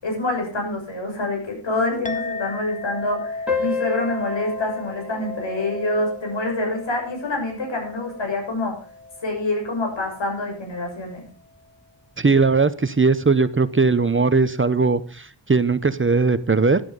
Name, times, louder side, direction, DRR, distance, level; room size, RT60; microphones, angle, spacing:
voice 1, 0.0-8.7 9.2-11.2, left 2 dB, 75° left, 1 dB, 7.1 m, -26 dB
Chink clink, 2.0-10.8, left 3 dB, 15° left, 1.6 m, -36 dB
sound 1, 3.5-8.4, left 4 dB, ahead, 6.0 m, -32 dB
voice 2, 12.2-16.8, right 4 dB, 25° right, 13 dB, 0.8 m, -19 dB
12.5 x 12.0 x 5.4 m, 0.42 s
wide cardioid pair, 95°, 44 cm